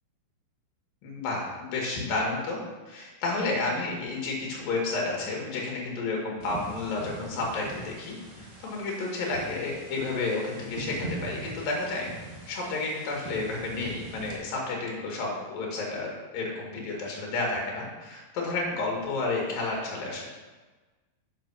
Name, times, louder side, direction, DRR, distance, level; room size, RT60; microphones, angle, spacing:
voice 1, 1.0-2.6 2.9-8.2 8.6-12.1 12.5-20.3, left 3 dB, 80° left, -1 dB, 3.5 m, -31 dB
sound 1, 6.4-14.4, right 2 dB, 40° right, 1.1 m, -42 dB
7.0 x 6.4 x 6.0 m, 1.3 s
omnidirectional pair, 3.9 m